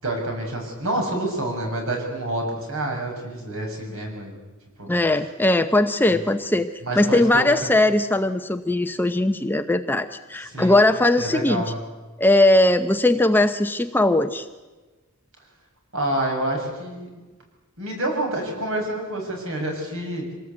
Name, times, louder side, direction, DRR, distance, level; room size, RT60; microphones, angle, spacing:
voice 1, 0.0-4.4 4.8-4.9 6.1-6.2 6.8-7.5 10.5-10.9 11.2-11.8 15.9-17.1 17.8-20.3, right 1 dB, 65° right, 1 dB, 6.9 m, -28 dB
voice 2, 4.9-6.7 7.0-11.6 12.2-14.5, left 1 dB, 10° left, 8 dB, 0.7 m, -19 dB
26.0 x 18.5 x 8.4 m, 1.2 s
head